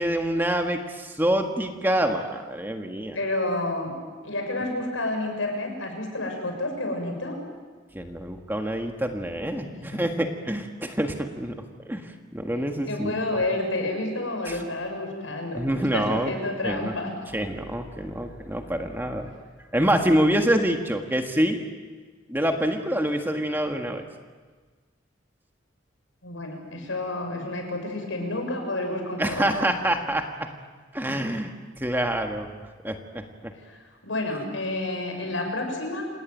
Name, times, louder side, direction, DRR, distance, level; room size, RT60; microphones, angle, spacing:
voice 1, 0.0-3.2 7.9-11.5 11.9-13.2 14.4-14.6 15.5-16.3 16.6-16.9 17.3-19.3 19.7-21.6 22.3-24.0 29.2-30.5 30.9-32.5 32.8-33.5, right 1 dB, 10° right, 4 dB, 1.6 m, -26 dB
voice 2, 3.1-3.9 4.2-7.4 9.6-10.0 12.9-17.1 26.2-29.5 31.1-31.2 33.7-33.8 34.0-36.0, left 2 dB, 85° left, 3 dB, 6.8 m, -30 dB
28.0 x 18.5 x 9.1 m, 1.4 s
head